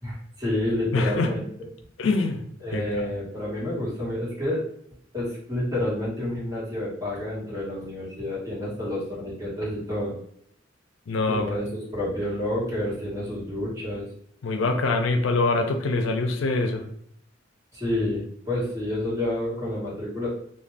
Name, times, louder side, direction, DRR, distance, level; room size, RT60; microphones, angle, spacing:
voice 1, 0.0-1.5 2.6-4.6 5.1-10.1 11.3-14.1 17.7-20.3, left 1 dB, 15° right, -8 dB, 1.3 m, -29 dB
voice 2, 0.9-1.3 2.0-2.4 2.7-2.8 11.1-11.5 14.4-16.8, left 3 dB, 85° left, 5 dB, 0.4 m, -24 dB
2.5 x 2.2 x 3.2 m, 0.67 s
head